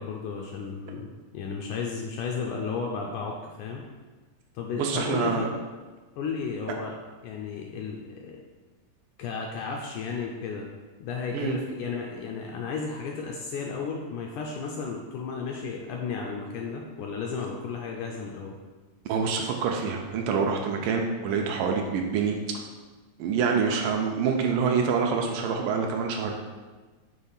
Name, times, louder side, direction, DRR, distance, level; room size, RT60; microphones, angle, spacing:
voice 1, 0.0-3.8 4.5-5.6 6.2-6.9 7.2-8.4 9.2-10.7 11.0-18.6, left 5 dB, 80° left, 0 dB, 1.8 m, -33 dB
voice 2, 4.8-5.5 11.3-11.6 19.1-22.6 23.2-26.3, right 5 dB, 80° right, 2 dB, 2.1 m, -26 dB
6.3 x 3.3 x 5.5 m, 1.3 s
omnidirectional pair, 4.0 m